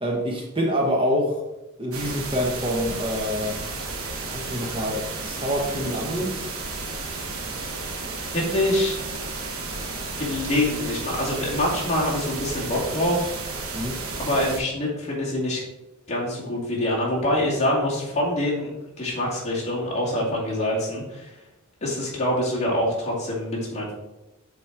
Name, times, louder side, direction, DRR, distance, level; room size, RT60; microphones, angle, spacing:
voice 1, 0.0-1.4 1.8-3.6 4.3-6.4 13.7-14.0, equal, 25° right, 0 dB, 1.0 m, -26 dB
sound 1, 1.9-14.6, right 3 dB, 75° right, 1.2 m, -33 dB
voice 2, 8.3-9.0 10.2-13.3 14.2-15.6 16.1-18.7 19.0-21.4 21.8-23.9, left 1 dB, 30° left, -5 dB, 2.3 m, -25 dB
7.4 x 4.1 x 4.7 m, 0.99 s
head